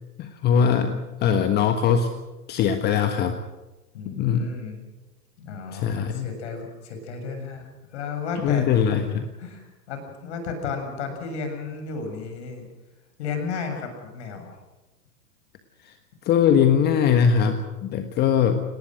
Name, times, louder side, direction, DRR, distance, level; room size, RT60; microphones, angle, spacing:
voice 1, 0.2-0.9 1.2-2.1 2.5-3.3 4.2-4.5 5.7-6.3 8.4-9.2 15.8-15.9 16.2-18.6, left 7 dB, 20° left, 7 dB, 1.4 m, -21 dB
voice 2, 3.9-4.8 5.4-8.7 9.0-9.1 9.4-12.6 13.2-14.5, left 5 dB, 45° left, 6 dB, 7.1 m, -33 dB
29.5 x 19.0 x 6.4 m, 1.1 s
figure-of-eight pair, 110°, 46 cm